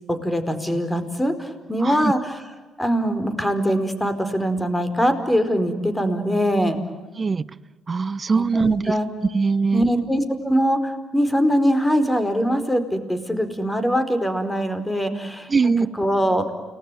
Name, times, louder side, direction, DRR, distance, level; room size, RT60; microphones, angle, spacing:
voice 1, 0.1-2.4 2.8-6.8 8.3-9.1 9.7-15.5 15.8-16.5, equal, 10° left, 10 dB, 4.7 m, -22 dB
voice 2, 7.9-8.8 9.3-9.9 15.5-15.9, right 4 dB, 35° right, 20 dB, 0.9 m, -21 dB
30.0 x 20.0 x 9.3 m, 1.3 s
hypercardioid pair, 55°, 0 cm